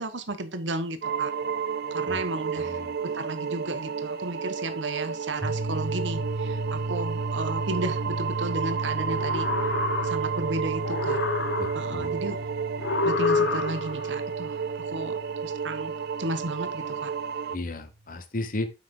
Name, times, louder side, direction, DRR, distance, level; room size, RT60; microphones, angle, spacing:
voice 1, 0.0-1.3 1.9-2.8 3.0-9.5 10.0-11.3 11.7-12.4 13.0-17.1, right 2 dB, 80° right, 1.2 m, -34 dB
sound 1, 1.0-17.6, right 6 dB, 55° right, 0.5 m, -31 dB
voice 2, 2.6-2.9 11.6-12.3 17.5-18.7, left 2 dB, 50° left, 1.1 m, -34 dB
sound 2, 5.4-17.3, right 2 dB, 30° right, 0.8 m, -35 dB
sound 3, 9.0-10.5 10.8-12.1 12.8-14.1, left 3 dB, 80° left, 1.4 m, -28 dB
8.4 x 5.9 x 3.8 m
head